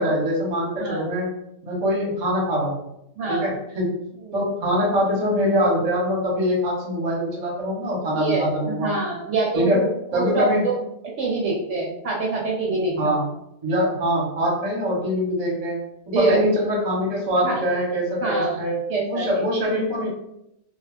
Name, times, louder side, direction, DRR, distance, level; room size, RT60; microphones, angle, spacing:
voice 1, 0.0-1.3 1.6-2.8 3.3-3.9 4.3-8.9 9.5-9.8 10.1-10.7 13.0-13.3 13.6-18.8 19.1-20.1, equal, 35° right, -3 dB, 0.7 m, -23 dB
voice 2, 3.2-3.6 4.3-4.5 8.1-10.7 11.2-13.2 16.1-16.4 17.4-17.6 18.2-18.6 18.9-19.3, right 3 dB, 70° right, -3 dB, 0.8 m, -25 dB
2.3 x 2.0 x 3.2 m, 0.82 s
omnidirectional pair, 1.4 m